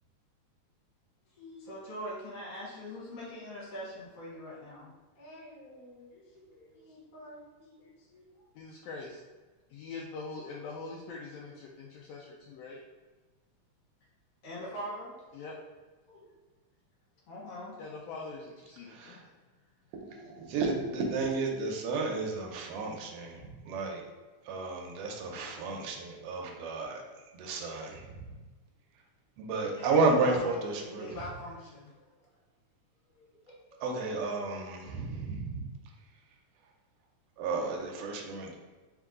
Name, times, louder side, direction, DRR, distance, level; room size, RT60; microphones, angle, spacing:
voice 1, 1.4-4.9 5.2-8.5 14.4-15.1 16.1-16.2 17.3-17.7 29.8-30.6 30.8-32.1 33.1-33.6, left 1 dB, 60° left, -6 dB, 2.2 m, -44 dB
voice 2, 8.5-9.2 9.7-12.8 15.3-15.6 17.8-19.3, left 3 dB, 80° left, -3 dB, 1.5 m, -43 dB
voice 3, 18.9-19.2 19.9-24.0 24.4-27.0 27.3-28.3 29.4-31.1 33.8-35.7 37.4-38.6, right 3 dB, 80° right, 1 dB, 1.3 m, -32 dB
4.6 x 2.3 x 3.7 m, 1.3 s
omnidirectional pair, 3.3 m